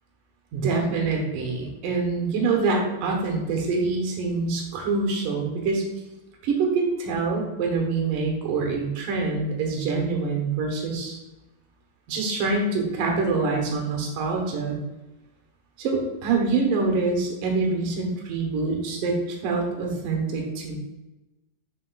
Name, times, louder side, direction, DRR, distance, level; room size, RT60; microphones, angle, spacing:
voice 1, 0.5-5.8 6.4-11.2 12.1-14.8 15.8-20.8, right 4 dB, 70° right, 0 dB, 2.2 m, -25 dB
8.4 x 5.9 x 2.3 m, 1.0 s
omnidirectional pair, 5.0 m